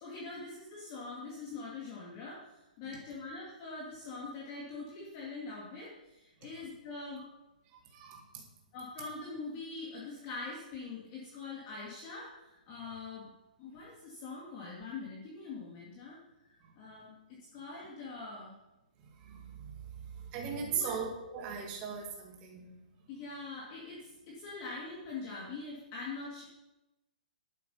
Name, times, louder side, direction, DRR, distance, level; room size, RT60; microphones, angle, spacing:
voice 1, 0.0-7.2 8.7-13.3 13.6-17.1 17.5-18.6 20.7-20.9 23.1-26.4, left 3 dB, 25° left, -4 dB, 2.1 m, -43 dB
voice 2, 19.3-19.7 20.3-22.7, right 6 dB, 20° right, 0 dB, 2.0 m, -38 dB
11.0 x 8.4 x 5.5 m, 0.97 s
hypercardioid pair, 175°, 5 cm